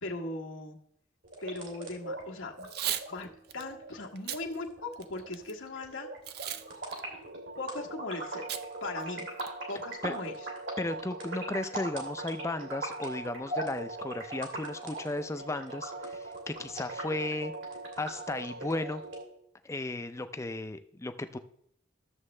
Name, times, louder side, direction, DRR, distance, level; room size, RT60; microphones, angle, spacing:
voice 1, 0.0-0.8 1.4-2.7 3.1-6.1 7.6-9.3 9.7-10.3, left 2 dB, 85° left, 0 dB, 1.4 m, -39 dB
sound 1, 1.2-19.2, right 2 dB, 75° right, 2.6 m, -40 dB
Packing tape duct tape / Tearing, 2.6-3.1 3.5-3.6 4.2-4.4 4.9-5.5 6.3-6.6 6.9-7.0 8.5-8.6 9.0-9.1 9.4-9.7, right 11 dB, 55° right, 0.4 m, -35 dB
voice 2, 10.8-17.5 18.0-19.0 19.6-21.4, left 2 dB, 15° left, 10 dB, 0.4 m, -35 dB
12.5 x 7.1 x 3.2 m, 0.69 s
head